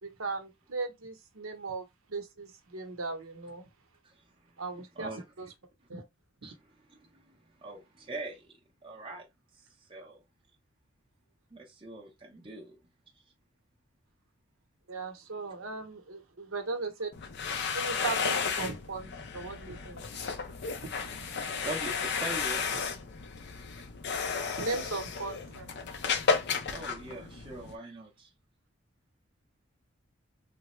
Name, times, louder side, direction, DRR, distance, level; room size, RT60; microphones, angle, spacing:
voice 1, 0.0-3.7 4.6-5.1 5.4-5.5 5.9-6.0 14.9-17.1 17.7-20.0 20.8-21.6 22.7-22.8 24.6-25.7, right 3 dB, 85° right, 0.8 m, -38 dB
voice 2, 6.9-8.5 8.8-9.3 9.6-10.2 11.5-12.8 21.6-22.7 26.7-28.3, right 2 dB, 25° right, 0.7 m, -42 dB
sound 1, 17.1-27.7, left 5 dB, 55° left, 0.5 m, -33 dB
3.3 x 2.0 x 3.0 m
head